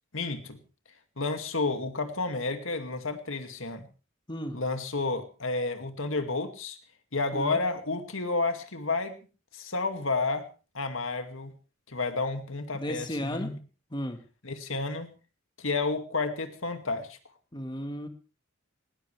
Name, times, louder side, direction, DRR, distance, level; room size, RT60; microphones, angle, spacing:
voice 1, 0.1-0.6 1.2-3.9 4.5-6.8 7.1-9.2 9.5-10.5 10.7-11.5 11.9-13.6 14.4-15.1 15.6-17.2, left 3 dB, 75° left, 7 dB, 2.3 m, -31 dB
voice 2, 4.3-4.6 7.3-7.6 12.7-13.5 13.9-14.2 17.5-18.1, equal, 20° left, 7 dB, 1.6 m, -34 dB
19.5 x 19.0 x 3.4 m, 0.34 s
head